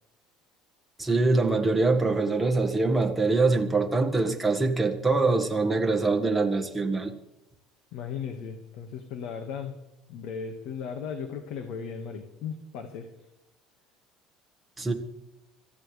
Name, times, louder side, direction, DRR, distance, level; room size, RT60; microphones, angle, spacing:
voice 1, 1.0-7.1 14.8-14.9, right 3 dB, 5° right, 1.6 m, -24 dB
voice 2, 7.9-9.8 10.1-13.1, left 6 dB, 65° left, 1.7 m, -36 dB
25.5 x 14.5 x 3.4 m
cardioid pair, 140°, 0 cm